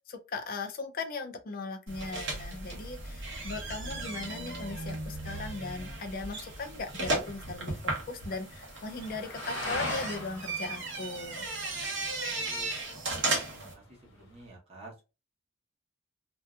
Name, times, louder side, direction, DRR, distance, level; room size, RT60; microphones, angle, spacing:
voice 1, 0.1-11.5, left 3 dB, 40° left, 0.4 m, -38 dB
sound 1, 1.9-13.7, right 2 dB, 60° right, 0.9 m, -36 dB
sound 2, 4.7-14.5, left 2 dB, 60° left, 0.8 m, -43 dB
voice 2, 12.2-15.0, right 2 dB, 30° right, 1.0 m, -52 dB
2.6 x 2.2 x 2.3 m
head